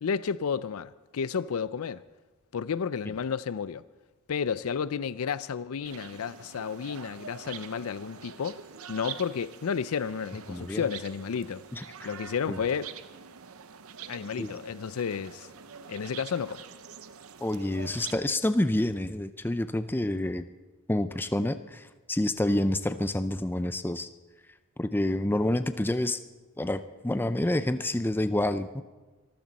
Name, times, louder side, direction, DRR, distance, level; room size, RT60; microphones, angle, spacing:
voice 1, 0.0-2.0 2.5-3.8 4.3-8.6 8.9-11.6 12.0-13.0 14.1-15.5 15.9-16.6, left 6 dB, 70° left, 0.5 m, -32 dB
sound 1, 5.8-18.2, right 7 dB, 70° right, 0.8 m, -45 dB
voice 2, 10.5-10.9 11.7-11.8 12.5-12.6 14.4-14.5 17.4-20.4 20.9-24.1 24.8-26.2 26.6-28.8, left 1 dB, 10° left, 0.5 m, -28 dB
25.5 x 13.5 x 4.1 m
head